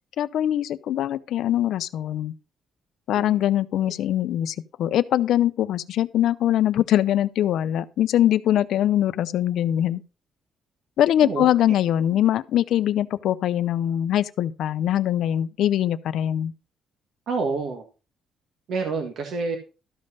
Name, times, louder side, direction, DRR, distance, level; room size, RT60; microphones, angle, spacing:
voice 1, 0.2-2.3 3.1-10.0 11.0-16.5, left 11 dB, 65° left, 0.6 m, -22 dB
voice 2, 11.2-11.8 17.3-17.8 18.7-19.6, right 4 dB, 55° right, 1.5 m, -28 dB
13.0 x 5.3 x 5.4 m
cardioid pair, 175°, 0 cm